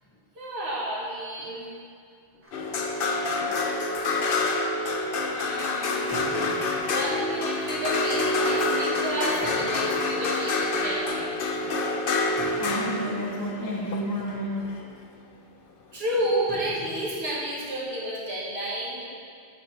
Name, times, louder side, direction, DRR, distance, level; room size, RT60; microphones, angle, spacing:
voice 1, 0.3-1.7 5.3-6.2 6.9-11.3 15.9-19.0, right 1 dB, 70° right, -6 dB, 1.8 m, -31 dB
sound 1, 1.4-1.6 2.3-2.4 2.7-2.8 3.4-3.5 6.1-7.3 8.1-8.2 9.3-10.7 11.2-11.3 12.4-13.5 13.7-14.1 14.4-14.7 16.5-18.1, equal, 5° left, 2.1 m, -45 dB
Applause, 2.4-9.4, equal, 15° right, 0.9 m, -46 dB
sound 2, 2.5-14.9 16.5-16.6, left 2 dB, 60° left, 0.8 m, -27 dB
voice 2, 12.6-14.7, equal, 20° left, -4 dB, 0.8 m, -31 dB
8.4 x 7.3 x 3.3 m, 2.3 s
omnidirectional pair, 1.1 m